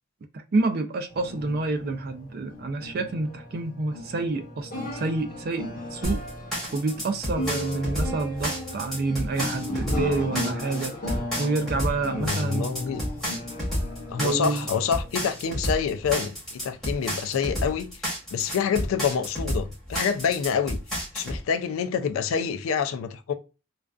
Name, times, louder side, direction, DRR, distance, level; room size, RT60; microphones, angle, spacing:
voice 1, 0.5-5.6 5.9-6.2 6.7-12.7 14.2-14.7, right 3 dB, 45° right, 0.3 m, -28 dB
sound 1, 1.1-15.8, left 1 dB, 40° left, 0.7 m, -36 dB
sound 2, 6.0-21.4, equal, ahead, 0.8 m, -31 dB
voice 2, 12.1-13.0 14.1-17.9 18.3-20.8 21.1-23.3, left 7 dB, 75° left, 0.3 m, -27 dB
2.4 x 2.2 x 2.3 m
head